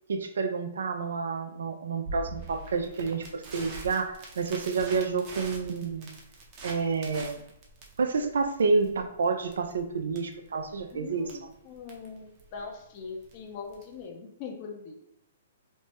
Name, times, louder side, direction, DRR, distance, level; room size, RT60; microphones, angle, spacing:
voice 1, 0.1-6.1 6.6-7.4 8.0-11.5, right 4 dB, 75° right, 7 dB, 0.4 m, -29 dB
Crackle, 2.0-14.0, right 2 dB, 40° right, 0.7 m, -45 dB
voice 2, 10.9-15.0, left 5 dB, 40° left, 3 dB, 0.6 m, -42 dB
3.1 x 2.1 x 3.0 m, 0.80 s
hypercardioid pair, 125°, 0 cm